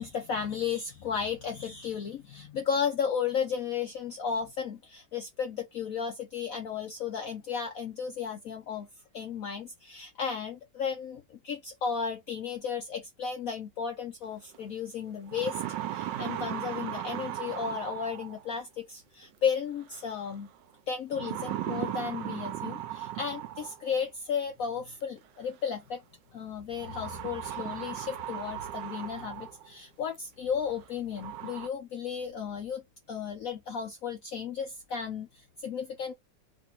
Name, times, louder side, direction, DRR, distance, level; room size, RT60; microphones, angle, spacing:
voice 1, 0.0-8.9 9.1-15.6 15.9-20.5 20.9-26.0 26.3-32.8 33.1-36.1, left 7 dB, 60° left, 1.0 m, -34 dB
sound 1, 14.5-14.6 15.1-18.5 19.9-20.3 21.1-23.9 25.2-25.3 26.8-29.7 30.1-30.2 30.8-30.9 31.1-31.7, right 12 dB, 75° right, 1.2 m, -37 dB
3.4 x 2.6 x 4.4 m
omnidirectional pair, 2.0 m